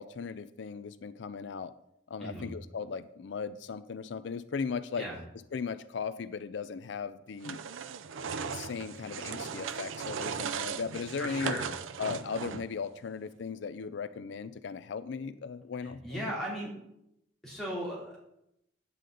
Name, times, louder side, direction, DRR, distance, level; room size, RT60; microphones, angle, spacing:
voice 1, 0.0-1.7 2.1-5.1 5.5-7.6 8.5-11.6 12.0-16.2, left 5 dB, 65° left, 14 dB, 0.4 m, -37 dB
sound 1, 7.4-12.8, right 6 dB, 90° right, 0.5 m, -37 dB
voice 2, 11.2-11.7 15.8-16.7 17.4-18.3, equal, ahead, -6 dB, 2.8 m, -37 dB
9.2 x 8.3 x 3.8 m, 0.80 s
head